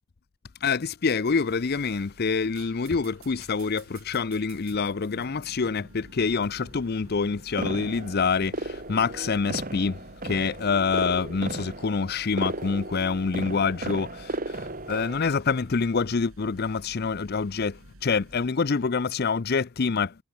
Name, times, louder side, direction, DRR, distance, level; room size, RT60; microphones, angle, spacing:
voice 1, 0.6-20.2, left 5 dB, 45° left, 0.5 m, -26 dB
sound 1, 1.5-18.5, right 1 dB, 65° right, 5.6 m, -51 dB
sound 2, 7.6-15.3, right 2 dB, 40° right, 2.7 m, -35 dB
head